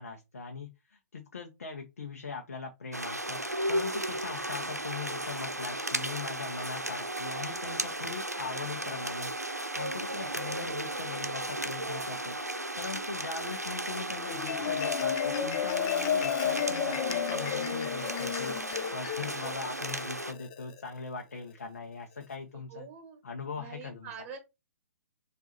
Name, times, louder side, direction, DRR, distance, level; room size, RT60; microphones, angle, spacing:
voice 1, 0.0-3.4 3.7-12.4 12.8-22.9 23.2-24.1, left 4 dB, 60° left, 3 dB, 0.9 m, -41 dB
sound 1, 2.9-20.3, right 1 dB, 90° right, 0.7 m, -35 dB
Organ, 7.0-17.9, right 11 dB, 55° right, 0.8 m, -47 dB
Marimba xylophone, 14.2-20.8, left 8 dB, 30° left, 0.4 m, -32 dB
voice 2, 19.2-19.7 22.7-23.2 23.6-24.4, right 5 dB, 20° right, 5 dB, 1.4 m, -45 dB
4.6 x 2.7 x 4.2 m, 0.24 s
figure-of-eight pair, 125°, 8 cm